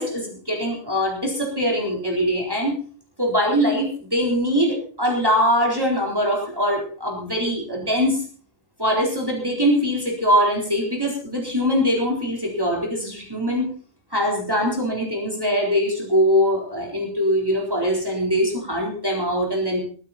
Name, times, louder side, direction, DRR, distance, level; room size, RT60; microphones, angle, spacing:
voice 1, 0.0-2.8 3.2-8.2 8.8-13.7 14.1-19.8, equal, 20° right, -1 dB, 4.0 m, -22 dB
22.0 x 9.6 x 4.2 m, 0.42 s
omnidirectional pair, 1.3 m